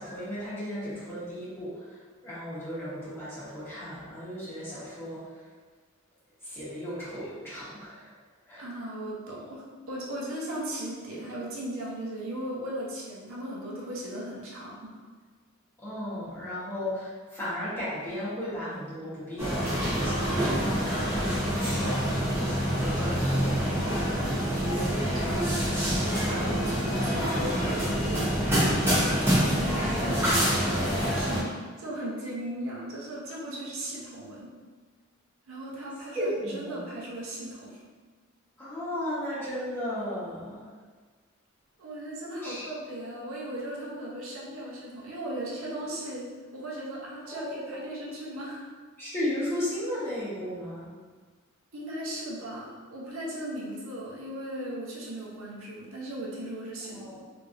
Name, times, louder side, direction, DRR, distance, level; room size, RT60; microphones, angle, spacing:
voice 1, 0.0-5.4 6.4-8.1 8.5-8.6 15.8-24.1 36.1-36.8 38.6-40.7 42.4-42.7 47.2-47.8 49.0-50.9 56.9-57.2, equal, 10° left, -11 dB, 1.2 m, -35 dB
voice 2, 8.6-14.9 24.6-25.4 26.5-30.5 31.1-34.5 35.5-37.8 41.8-46.3 46.5-48.6 51.7-57.2, right 1 dB, 70° right, -4 dB, 0.6 m, -37 dB
sound 1, 19.4-31.4, equal, 10° right, 0.8 m, -26 dB
3.2 x 2.6 x 2.5 m, 1.4 s
head